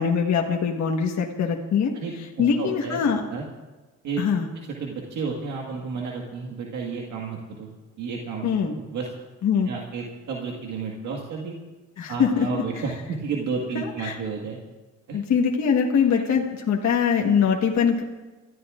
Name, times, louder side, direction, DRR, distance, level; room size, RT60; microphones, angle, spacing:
voice 1, 0.0-1.9 2.4-3.2 4.2-4.5 8.4-8.7 9.4-9.7 12.0-12.6 13.7-14.2 15.1-18.0, left 6 dB, 65° left, 0 dB, 1.4 m, -22 dB
voice 2, 1.9-3.0 3.3-3.4 4.0-4.2 4.8-7.7 8.0-9.1 9.7-11.5 12.1-14.6 15.1-15.2, right 5 dB, 80° right, -1 dB, 1.8 m, -32 dB
28.5 x 14.0 x 2.5 m, 1.2 s
cardioid pair, 90°, 30 cm